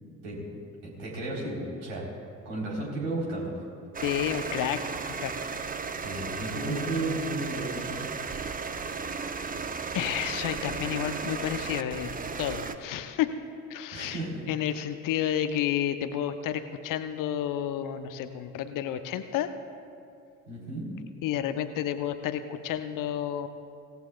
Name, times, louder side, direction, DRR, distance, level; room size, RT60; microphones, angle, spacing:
voice 1, 0.8-2.0 2.5-3.5 6.0-8.0 13.9-14.4 20.5-20.9, right 2 dB, 65° right, -3 dB, 4.0 m, -33 dB
sound 1, 3.9-12.8, right 5 dB, 20° right, 0.8 m, -35 dB
voice 2, 4.0-5.3 9.9-12.1 12.4-13.4 13.7-14.2 14.5-19.5 21.2-23.5, left 10 dB, 50° left, 10 dB, 0.9 m, -30 dB
25.0 x 17.0 x 2.4 m, 2.4 s
figure-of-eight pair, 50°, 41 cm